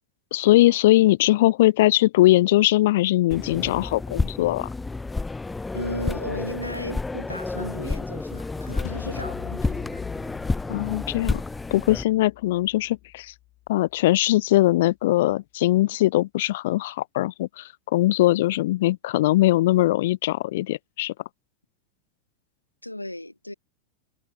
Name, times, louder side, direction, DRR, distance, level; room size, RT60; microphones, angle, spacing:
voice 1, 0.3-4.7 10.7-11.4 11.7-13.3 13.7-21.1, left 16 dB, 55° left, 0.7 m, -21 dB
sound 1, 3.3-12.0, left 3 dB, 10° left, 1.1 m, -30 dB
voice 2, 5.7-10.0 22.8-23.5, left 1 dB, 85° left, 3.1 m, -35 dB
sound 2, 8.8-13.9, left 17 dB, 35° left, 7.1 m, -43 dB
figure-of-eight pair, 90°, 0 cm